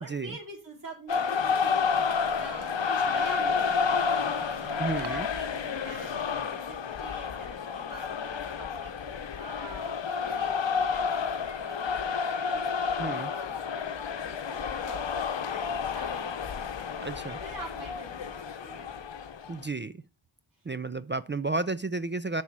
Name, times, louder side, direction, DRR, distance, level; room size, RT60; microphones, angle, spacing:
voice 1, 0.0-1.8 2.2-15.0 15.4-16.5 17.4-19.0, right 2 dB, 40° right, 4.5 m, -46 dB
sound 1, 1.1-19.6, left 6 dB, 65° left, 0.9 m, -30 dB
sound 2, 1.4-6.4, right 5 dB, 85° right, 1.1 m, -48 dB
voice 2, 4.8-5.3 13.0-13.3 17.0-17.4 19.5-20.0 20.6-22.4, right 3 dB, 25° right, 0.4 m, -32 dB
7.1 x 6.3 x 4.6 m
wide cardioid pair, 80°, 48 cm